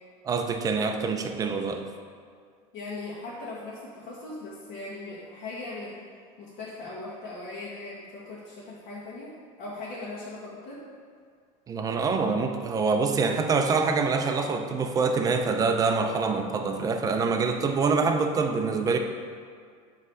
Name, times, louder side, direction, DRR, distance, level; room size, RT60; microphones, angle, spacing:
voice 1, 0.2-1.9 11.7-19.0, right 4 dB, 20° right, 5 dB, 0.5 m, -25 dB
voice 2, 2.7-6.1 6.4-9.3 9.6-10.8, left 2 dB, 50° left, -7 dB, 1.5 m, -39 dB
7.8 x 3.2 x 6.2 m, 2.1 s
cardioid pair, 150°, 17 cm